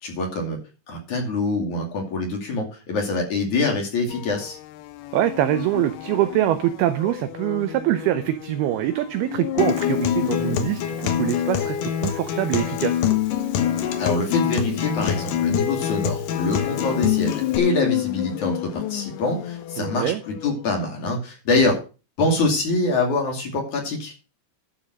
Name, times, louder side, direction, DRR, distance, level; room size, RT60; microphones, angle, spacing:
voice 1, 0.0-0.6 0.9-4.6 14.0-21.8 22.2-24.2, left 2 dB, 45° left, 1 dB, 3.5 m, -25 dB
sound 1, 4.1-20.7, left 15 dB, 85° left, 2.3 m, -34 dB
voice 2, 5.1-13.0 19.8-20.2, right 13 dB, 80° right, 10 dB, 2.2 m, -24 dB
Acoustic guitar, 9.6-17.6, left 9 dB, 70° left, 2.1 m, -24 dB
12.0 x 5.8 x 6.3 m, 0.34 s
omnidirectional pair, 5.3 m